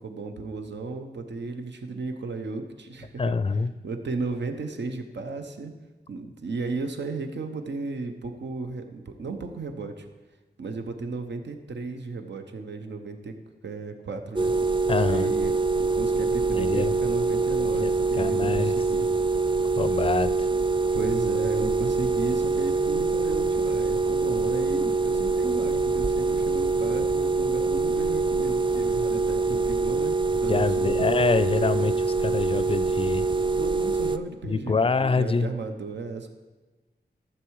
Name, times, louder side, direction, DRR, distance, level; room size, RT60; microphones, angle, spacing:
voice 1, 0.0-3.4 3.8-5.7 6.1-10.1 10.6-13.3 13.6-14.5 15.1-19.1 20.9-31.1 33.3-36.3, right 3 dB, 90° right, 6 dB, 0.9 m, -34 dB
voice 2, 3.2-3.7 14.9-15.3 16.5-16.9 17.7-18.7 19.8-20.5 30.5-33.3 34.4-35.5, left 4 dB, 30° left, 14 dB, 0.4 m, -26 dB
sound 1, 14.4-34.2, right 3 dB, 25° right, 0.4 m, -24 dB
13.0 x 7.4 x 4.8 m, 1.2 s
wide cardioid pair, 95°, 18 cm